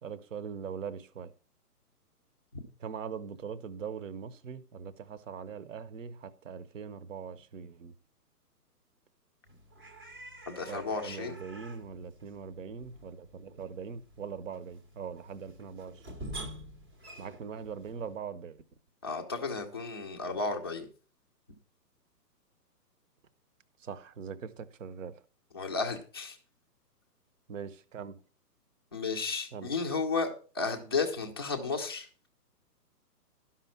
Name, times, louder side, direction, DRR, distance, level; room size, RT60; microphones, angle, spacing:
voice 1, 0.0-1.3 2.8-8.0 10.7-16.2 17.2-18.6 23.8-25.2 27.5-28.2 29.5-29.7, right 6 dB, 50° right, 0.9 m, -41 dB
sound 1, 9.4-18.2, right 1 dB, 15° right, 0.7 m, -48 dB
voice 2, 10.5-11.4 19.0-20.9 25.5-26.4 28.9-32.1, left 4 dB, 15° left, 0.5 m, -33 dB
12.0 x 5.7 x 5.6 m
hypercardioid pair, 155°, 49 cm